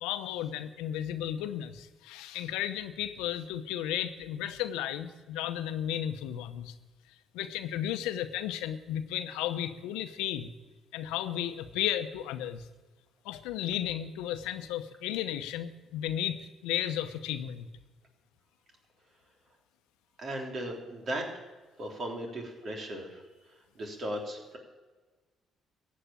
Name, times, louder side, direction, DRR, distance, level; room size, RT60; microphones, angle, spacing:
voice 1, 0.0-6.7 7.3-10.5 10.9-12.7 13.2-17.7, left 11 dB, 80° left, 10 dB, 0.8 m, -34 dB
voice 2, 20.2-21.3 21.8-24.6, right 1 dB, 50° right, 1 dB, 3.6 m, -37 dB
15.0 x 8.7 x 8.9 m, 1.3 s
hypercardioid pair, 55°, 0 cm